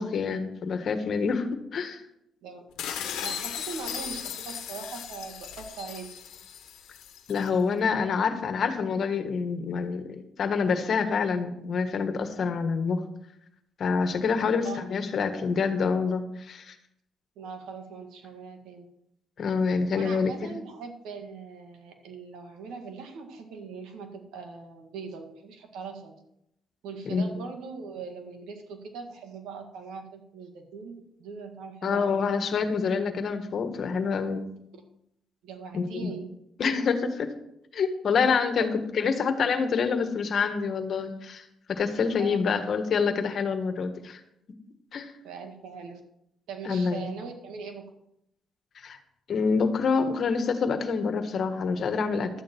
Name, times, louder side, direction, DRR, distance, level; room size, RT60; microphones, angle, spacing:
voice 1, 0.0-1.5 1.7-2.0 7.3-13.0 13.8-16.7 19.4-20.5 27.0-27.3 31.8-34.4 35.7-36.2 36.6-37.3 37.7-38.7 38.9-41.4 41.8-44.2 44.9-45.1 46.6-47.2 48.8-49.0 49.3-52.3, left 5 dB, 55° left, 8 dB, 1.5 m, -27 dB
sound 1, 2.8-7.5, left 9 dB, 85° left, 1.2 m, -37 dB
voice 2, 3.2-6.1 14.4-14.9 17.4-18.9 19.9-26.2 26.8-32.2 35.4-36.3 36.8-36.9 38.6-38.7 39.0-39.1 42.2-42.6 45.2-46.0 46.5-47.9, right 5 dB, 85° right, 4 dB, 1.8 m, -41 dB
12.0 x 8.9 x 4.5 m, 0.79 s
cardioid pair, 90°, 0 cm